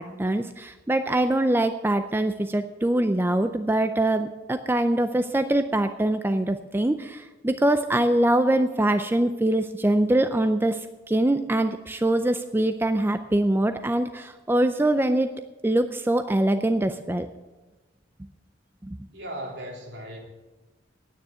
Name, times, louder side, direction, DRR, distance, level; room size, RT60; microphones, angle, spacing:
voice 1, 0.0-10.8 11.1-15.3 15.6-17.3 18.8-19.0, right 1 dB, 10° right, 9 dB, 0.4 m, -23 dB
voice 2, 19.1-20.3, right 1 dB, 70° right, -1 dB, 3.1 m, -37 dB
9.7 x 9.4 x 8.9 m, 1.2 s
head